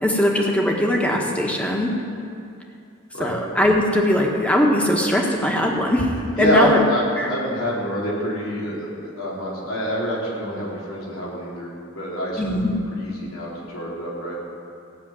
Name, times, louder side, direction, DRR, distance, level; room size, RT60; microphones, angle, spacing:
voice 1, 0.0-1.9 3.2-6.8 7.2-7.3 12.4-12.7, left 1 dB, 5° left, 0 dB, 1.4 m, -20 dB
voice 2, 6.4-12.6 12.9-14.4, equal, 85° left, -4 dB, 3.6 m, -26 dB
15.0 x 6.9 x 8.8 m, 2.5 s
head